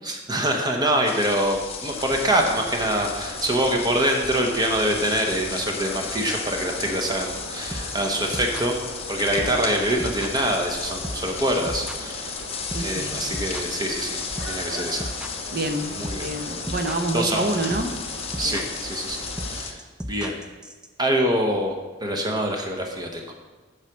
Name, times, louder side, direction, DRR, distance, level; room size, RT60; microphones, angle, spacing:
voice 1, 0.0-8.7 9.1-12.3 12.8-14.2 14.5-15.1 15.9-16.3 17.1-17.6 18.4-19.8 20.1-20.4 21.0-21.8 22.0-23.3, right 1 dB, 20° right, 2 dB, 1.0 m, -25 dB
sound 1, 1.0-19.7, left 6 dB, 30° left, 0.7 m, -35 dB
sound 2, 1.9-19.6, equal, 80° right, 1.8 m, -39 dB
sound 3, 7.7-20.9, equal, 5° right, 0.4 m, -34 dB
voice 2, 12.6-13.2 15.5-15.9 16.2-17.9 18.4-18.6, right 1 dB, 50° right, 5 dB, 0.9 m, -27 dB
7.4 x 4.9 x 6.1 m, 1.3 s
head